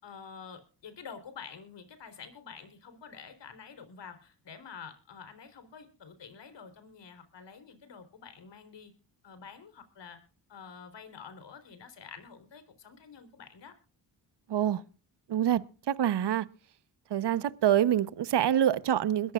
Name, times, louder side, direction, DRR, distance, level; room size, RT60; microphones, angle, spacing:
voice 1, 0.0-8.9 9.2-10.2 10.5-13.7, left 6 dB, 60° left, 4.0 m, -48 dB
voice 2, 14.5-14.8 15.3-16.5 17.1-19.3, right 10 dB, 55° right, 1.0 m, -26 dB
22.0 x 14.0 x 2.5 m
supercardioid pair, 60°, 49 cm